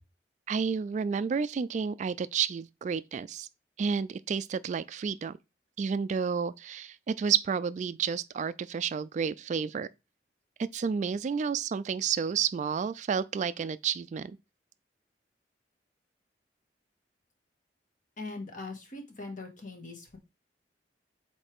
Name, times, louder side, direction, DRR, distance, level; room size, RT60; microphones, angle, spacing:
voice 1, 0.5-3.5 3.8-5.4 5.8-9.9 10.7-14.4, right 6 dB, 45° right, 0.3 m, -30 dB
voice 2, 18.2-20.2, left 3 dB, 50° left, 1.6 m, -41 dB
8.2 x 3.2 x 3.5 m
head